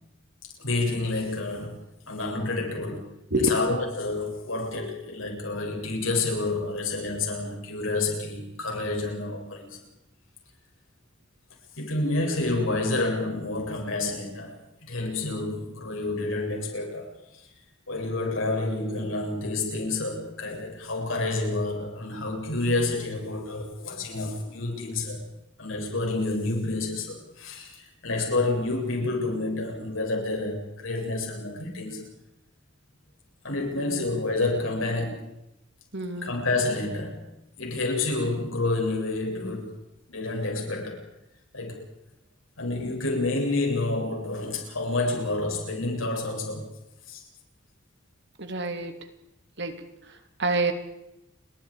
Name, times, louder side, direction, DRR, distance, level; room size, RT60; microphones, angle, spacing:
voice 1, 0.6-3.1 3.4-9.8 11.8-17.1 17.9-25.2 25.6-32.1 33.4-35.3 36.2-37.2 37.6-39.8 40.1-41.0 41.5-41.9 42.6-46.7 47.1-47.2, left 2 dB, 90° left, 7.8 m, -29 dB
voice 2, 35.9-36.3 48.4-48.9 49.6-49.8 50.4-50.7, right 1 dB, 60° right, 3.1 m, -27 dB
30.0 x 23.0 x 5.1 m
head